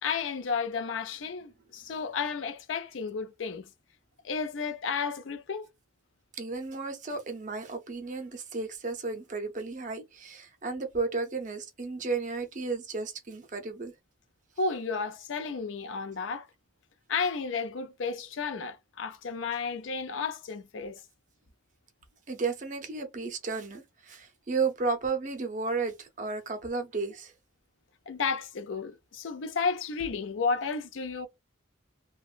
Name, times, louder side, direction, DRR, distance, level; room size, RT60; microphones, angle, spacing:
voice 1, 0.0-3.7 4.2-5.7 14.6-16.5 17.1-21.0 28.1-31.3, left 5 dB, 80° left, 0.5 m, -32 dB
voice 2, 6.3-13.9 22.3-27.3, right 4 dB, 40° right, 0.5 m, -33 dB
2.8 x 2.2 x 2.4 m
head